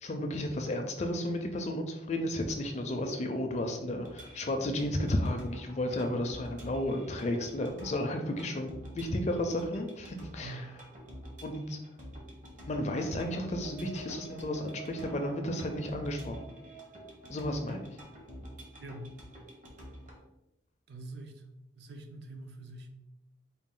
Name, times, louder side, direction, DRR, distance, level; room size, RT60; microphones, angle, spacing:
voice 1, 0.0-10.6 11.4-11.8 12.7-16.5 17.3-17.9, left 1 dB, 35° left, 5 dB, 0.4 m, -33 dB
sound 1, 4.0-20.2, equal, 40° right, 0.8 m, -49 dB
voice 2, 10.4-10.7 18.8-19.2 20.9-21.4 21.8-22.9, right 2 dB, 60° right, 5 dB, 0.4 m, -44 dB
sound 2, 12.6-18.3, right 5 dB, 80° right, 1.0 m, -52 dB
4.0 x 2.3 x 3.7 m, 0.93 s
head